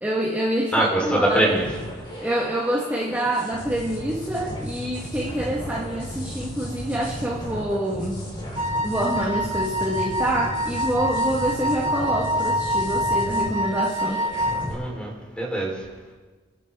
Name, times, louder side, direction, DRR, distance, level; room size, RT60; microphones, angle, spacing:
voice 1, 0.0-1.5 2.2-8.2 8.8-14.2, right 1 dB, 10° right, -4 dB, 1.7 m, -26 dB
voice 2, 0.7-1.6 14.7-15.8, right 1 dB, 5° left, -2 dB, 4.3 m, -23 dB
sound 1, 1.4-14.7, equal, 25° left, 4.7 m, -35 dB
Wind instrument woodwind instrument, 8.6-14.7, equal, 25° right, 4.8 m, -26 dB
29.5 x 12.0 x 3.8 m, 1.3 s
head